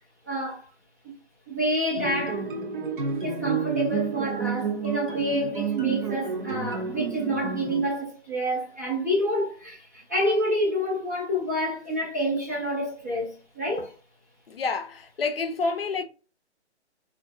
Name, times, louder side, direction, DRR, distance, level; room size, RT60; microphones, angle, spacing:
voice 1, 0.2-0.7 1.5-2.4 3.2-13.9, equal, 15° right, 0.5 m, -28 dB
sound 1, 2.0-7.9, right 5 dB, 50° right, 0.8 m, -30 dB
voice 2, 14.5-16.0, left 4 dB, 55° left, 0.5 m, -29 dB
3.6 x 2.5 x 2.5 m
figure-of-eight pair, 155°, 34 cm